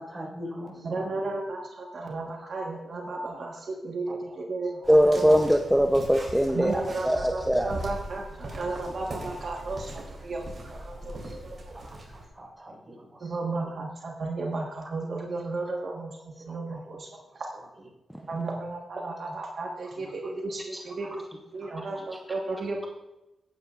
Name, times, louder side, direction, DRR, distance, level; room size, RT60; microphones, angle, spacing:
voice 1, 0.0-1.1 4.1-4.2 6.2-6.3 8.5-8.6 11.0-11.4 12.1-13.2 16.7-16.8 21.0-21.1 21.7-21.9, equal, 20° right, -1 dB, 4.2 m, -42 dB
voice 2, 0.8-5.4 6.5-11.8 13.2-17.1 18.2-21.2 21.5-22.9, right 3 dB, 60° right, -1 dB, 1.3 m, -34 dB
sound 1, 4.8-12.3, right 1 dB, 45° right, 3.0 m, -40 dB
voice 3, 4.9-7.7, equal, 5° right, 3 dB, 0.6 m, -21 dB
16.5 x 9.5 x 2.4 m, 0.97 s
cardioid pair, 100°, 0 cm